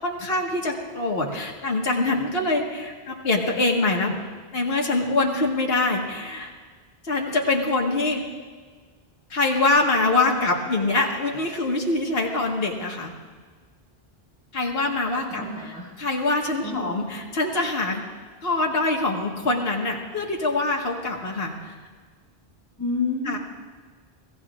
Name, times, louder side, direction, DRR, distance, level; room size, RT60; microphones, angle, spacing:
voice 1, 0.0-4.2 4.5-6.5 7.0-8.3 9.3-13.1 14.5-15.7 16.0-18.0 18.4-21.8 23.3-23.4, left 2 dB, 75° left, 0 dB, 1.9 m, -24 dB
voice 2, 15.1-15.9 16.6-16.9 22.8-23.4, left 3 dB, 15° left, -11 dB, 5.9 m, -29 dB
25.5 x 16.0 x 2.5 m, 1.5 s
omnidirectional pair, 1.0 m